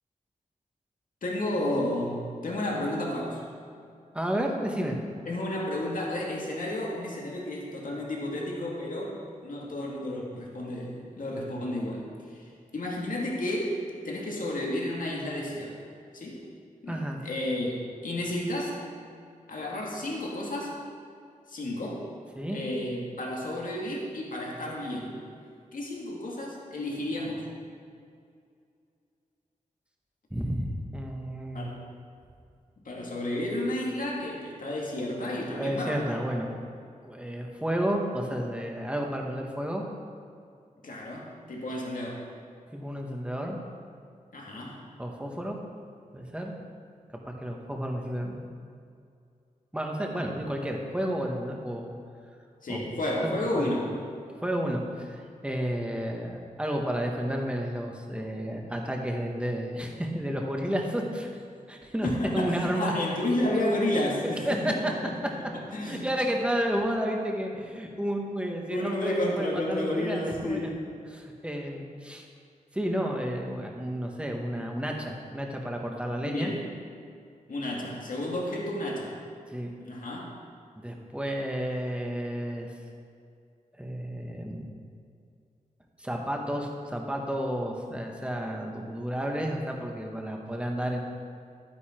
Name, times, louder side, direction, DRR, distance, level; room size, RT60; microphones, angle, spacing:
voice 1, 1.2-3.4 5.3-9.2 9.4-12.5 12.7-13.8 14.0-15.8 16.1-16.5 16.8-17.8 18.0-18.8 19.5-20.7 21.5-22.0 22.5-25.2 25.7-27.4 31.5-31.8 32.8-36.0 40.8-42.2 44.3-44.8 52.6-53.9 62.0-65.0 65.7-66.1 68.7-70.7 76.2-76.6 77.5-79.2 79.8-80.3, left 1 dB, 70° left, -3 dB, 2.2 m, -31 dB
voice 2, 4.1-5.0 16.9-17.2 22.3-22.6 30.3-31.7 35.6-36.5 37.0-39.8 42.7-43.6 45.0-45.6 46.1-46.5 47.1-48.5 49.7-52.0 52.7-52.9 53.2-53.7 54.4-61.3 61.7-62.9 64.2-64.7 65.8-70.7 71.0-72.2 72.7-76.5 79.5-79.7 80.8-82.7 83.8-84.6 86.0-91.0, equal, 10° right, 1 dB, 1.5 m, -31 dB
11.5 x 9.8 x 4.5 m, 2.3 s
wide cardioid pair, 90°, 14 cm